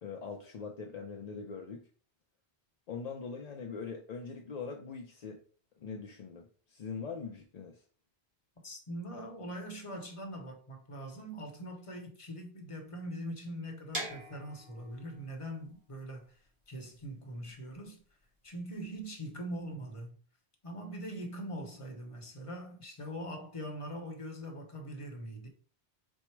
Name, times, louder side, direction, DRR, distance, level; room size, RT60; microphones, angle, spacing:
voice 1, 0.0-1.9 2.9-5.4 5.8-7.8, left 5 dB, 55° left, 0.5 m, -42 dB
voice 2, 8.6-16.4 16.7-18.0 18.4-20.2 20.6-25.5, equal, 30° left, 0.8 m, -42 dB
sound 1, 13.9-19.7, right 1 dB, 60° right, 1.9 m, -45 dB
4.4 x 2.1 x 4.4 m
omnidirectional pair, 1.1 m